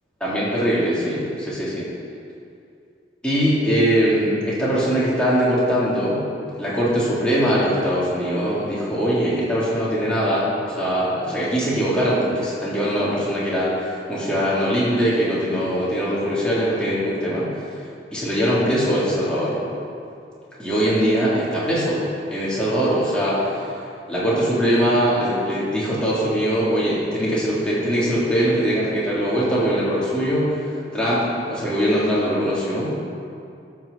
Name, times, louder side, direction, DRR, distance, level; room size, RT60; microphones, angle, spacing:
voice 1, 0.2-1.8 3.2-6.2 6.6-17.8 18.1-19.6 20.6-23.8 24.1-33.0, equal, 5° left, -9 dB, 2.9 m, -21 dB
14.0 x 6.2 x 6.9 m, 2.5 s
head